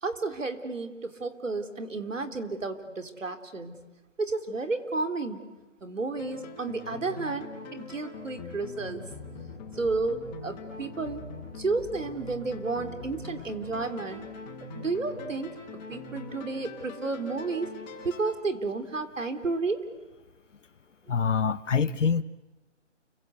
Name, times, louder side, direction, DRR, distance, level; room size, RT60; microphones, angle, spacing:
voice 1, 0.0-3.8 4.2-5.4 5.8-9.0 9.8-11.2 11.6-14.2 14.7-15.5 15.9-17.7 18.0-19.8, right 3 dB, 80° right, 8 dB, 3.8 m, -32 dB
sound 1, 6.2-18.2, left 3 dB, 15° left, 6.8 m, -42 dB
voice 2, 21.1-22.2, left 6 dB, 75° left, 14 dB, 1.3 m, -25 dB
29.5 x 24.0 x 8.4 m, 1.1 s
hypercardioid pair, 160°, 37 cm